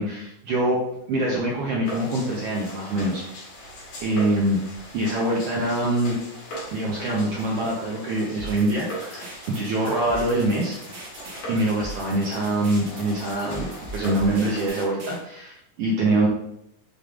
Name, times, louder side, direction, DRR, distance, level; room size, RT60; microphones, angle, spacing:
voice 1, 0.0-3.2 4.0-4.6 4.9-6.1 6.7-10.8 11.5-16.3, right 1 dB, 85° right, -3 dB, 1.3 m, -24 dB
sound 1, 1.8-14.7, equal, 60° left, 2.3 m, -39 dB
sound 2, 8.4-15.2, right 2 dB, 60° right, 1.3 m, -40 dB
6.2 x 3.5 x 2.4 m, 0.77 s
omnidirectional pair, 3.6 m